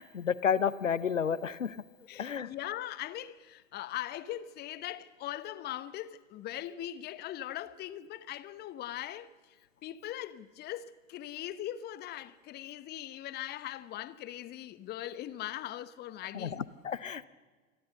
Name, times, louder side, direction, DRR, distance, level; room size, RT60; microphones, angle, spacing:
voice 1, 0.0-1.8 2.2-2.5 16.3-17.2, left 7 dB, 80° left, 0.9 m, -31 dB
voice 2, 2.1-9.3 9.8-16.6, left 13 dB, 25° left, 1.0 m, -40 dB
27.0 x 21.0 x 6.7 m
figure-of-eight pair, 90°, 38 cm